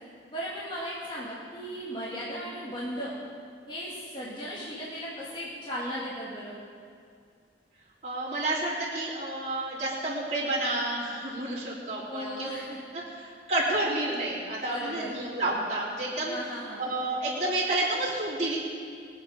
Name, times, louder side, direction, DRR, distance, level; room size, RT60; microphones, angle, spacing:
voice 1, 0.3-3.1 3.7-6.6 12.1-12.8 14.6-15.1 16.3-16.8, equal, 25° left, -7 dB, 2.4 m, -36 dB
voice 2, 8.0-12.5 13.2-16.4 16.8-18.6, right 2 dB, 40° right, -8 dB, 4.1 m, -30 dB
23.5 x 8.0 x 5.0 m, 2.3 s
head